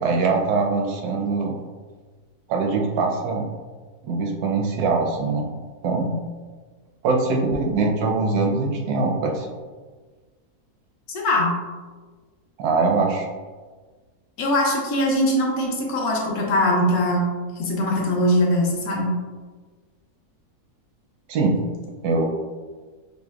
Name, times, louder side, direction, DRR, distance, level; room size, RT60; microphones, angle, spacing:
voice 1, 0.0-1.5 2.5-3.5 4.0-5.5 5.8-6.2 7.0-9.5 12.6-13.3 21.3-21.6 22.0-22.2, right 3 dB, 75° right, 1 dB, 1.1 m, -22 dB
voice 2, 11.1-11.6 14.4-19.1, left 1 dB, 70° left, -2 dB, 1.1 m, -21 dB
5.3 x 2.1 x 2.2 m, 1.4 s
omnidirectional pair, 1.7 m